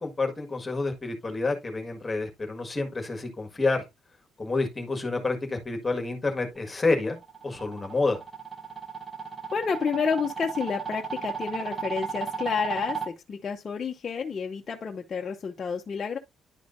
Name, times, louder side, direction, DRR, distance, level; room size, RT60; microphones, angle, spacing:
voice 1, 0.0-3.8 4.4-7.2 7.4-8.2, left 3 dB, 15° left, 1.7 m, -28 dB
sound 1, 6.9-13.1, right 6 dB, 25° right, 1.0 m, -35 dB
voice 2, 9.5-16.2, left 6 dB, 30° left, 0.7 m, -30 dB
10.5 x 5.0 x 2.6 m
cardioid pair, 150°, 0 cm